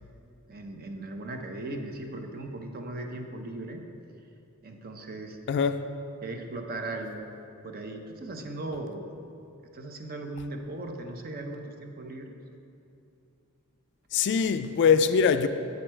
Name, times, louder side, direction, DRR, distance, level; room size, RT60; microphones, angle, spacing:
voice 1, 0.5-3.8 4.6-5.4 6.2-7.3 7.6-9.1 9.7-12.3, right 2 dB, 40° right, 0.7 m, -38 dB
voice 2, 5.5-5.9 14.1-15.5, left 6 dB, 50° left, 0.3 m, -23 dB
8.3 x 6.4 x 4.4 m
head